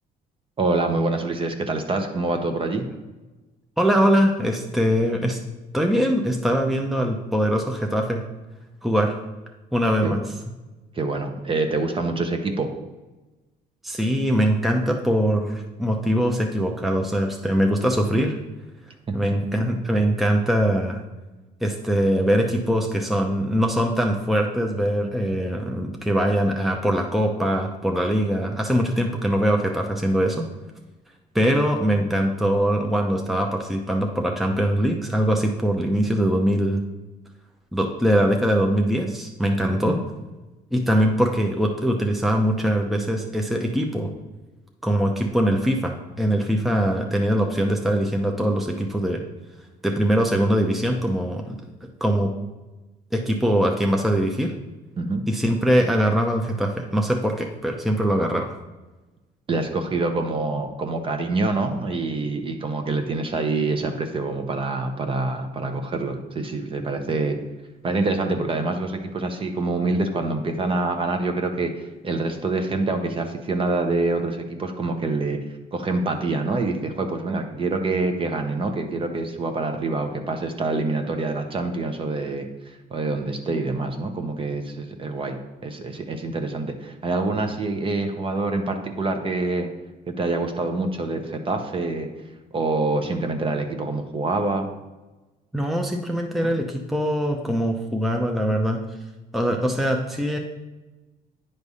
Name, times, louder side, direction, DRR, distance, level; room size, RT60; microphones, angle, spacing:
voice 1, 0.6-2.9 10.0-10.2 10.9-12.7 19.1-19.2 39.8-40.0 55.0-55.2 59.5-67.4 67.8-75.4 75.7-85.4 85.6-89.7 90.2-92.1 92.5-94.7 96.4-96.6, right 3 dB, 30° right, 5 dB, 0.9 m, -26 dB
voice 2, 3.8-5.4 5.7-8.2 8.8-9.2 9.7-10.2 13.8-18.4 19.1-21.0 21.6-30.5 31.3-36.8 37.7-40.0 40.7-44.1 44.8-49.2 49.8-51.6 52.0-52.3 53.1-54.5 55.3-58.5 95.5-98.8 99.3-100.4, equal, ahead, 1 dB, 0.7 m, -22 dB
9.5 x 3.3 x 5.4 m, 1.1 s
cardioid pair, 110°, 17 cm